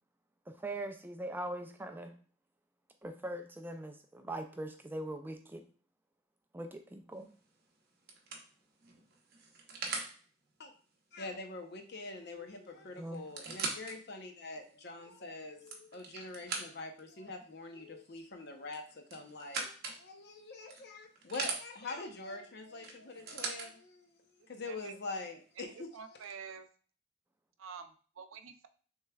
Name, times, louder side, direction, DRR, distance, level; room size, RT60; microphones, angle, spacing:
voice 1, 0.5-2.1 3.0-5.6 6.5-7.3 13.0-13.3, right 1 dB, 10° right, 6 dB, 0.3 m, -41 dB
sound 1, 7.2-7.5 8.1-10.1 12.2-12.3 12.5-12.6 13.1-14.0 14.6-14.7 15.4-17.0 18.7-20.0 20.7-21.6 22.8-23.7 24.6-24.7, right 4 dB, 50° right, 0.8 m, -40 dB
voice 2, 11.1-19.7 20.0-24.2 24.5-26.2, left 3 dB, 50° left, 5 dB, 0.7 m, -44 dB
voice 3, 24.7-25.0 25.6-26.7 27.6-28.7, right 6 dB, 75° right, 9 dB, 0.5 m, -48 dB
6.5 x 3.2 x 2.3 m, 0.42 s
head